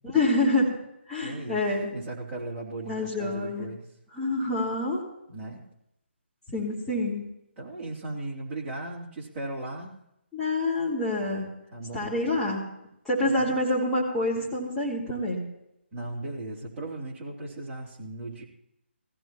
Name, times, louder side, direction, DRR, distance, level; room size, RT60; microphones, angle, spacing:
voice 1, 0.0-0.7 1.1-1.9 2.9-3.7 4.2-5.0 6.5-7.2 10.3-11.5 11.9-12.7 13.1-15.4, left 2 dB, 5° left, -10 dB, 3.5 m, -27 dB
voice 2, 1.2-1.6 1.9-3.8 5.3-5.6 7.6-10.0 11.7-12.1 13.2-13.6 15.9-18.4, right 2 dB, 15° right, -6 dB, 3.2 m, -37 dB
20.5 x 15.5 x 3.0 m, 0.81 s
figure-of-eight pair, 150°, 7 cm